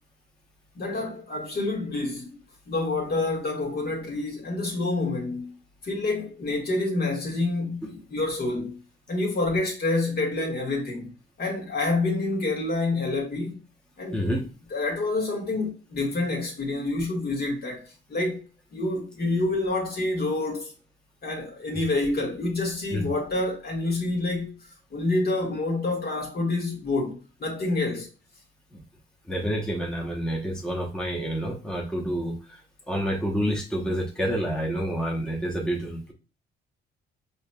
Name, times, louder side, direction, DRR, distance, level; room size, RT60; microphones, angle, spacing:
voice 1, 0.7-2.3 2.7-5.5 5.8-8.8 9.1-11.1 11.4-13.6 14.0-14.2 14.7-18.4 18.7-20.7 21.2-24.6 24.9-28.1, left 2 dB, 50° left, 1.6 m, -27 dB
voice 2, 14.1-14.4 21.7-21.8 22.9-23.1 28.7-28.8 29.3-32.6 32.9-36.1, equal, 5° left, 0.9 m, -28 dB
4.9 x 2.8 x 2.3 m
cardioid pair, 90°, 20 cm